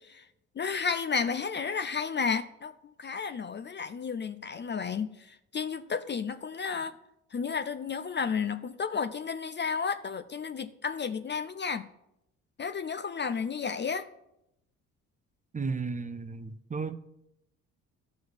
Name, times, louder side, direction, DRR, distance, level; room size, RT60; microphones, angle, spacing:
voice 1, 0.6-2.7 3.0-5.2 5.5-6.9 7.3-11.9 12.6-14.1, left 5 dB, 25° left, 0.6 m, -32 dB
voice 2, 15.5-17.0, right 4 dB, 20° right, 0.7 m, -34 dB
12.5 x 4.7 x 8.0 m
figure-of-eight pair, 45°, 40 cm